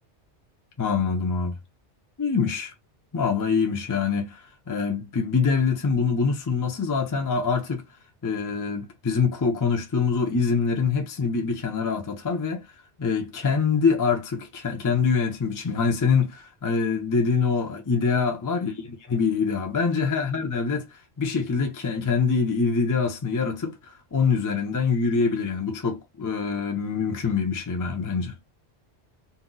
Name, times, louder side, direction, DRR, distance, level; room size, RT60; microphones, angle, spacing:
voice 1, 0.8-1.6 2.2-2.7 3.1-4.4 4.7-7.8 8.2-12.7 13.0-20.9 21.2-28.4, left 5 dB, 25° left, 0.5 m, -24 dB
2.8 x 2.1 x 3.8 m
omnidirectional pair, 1.2 m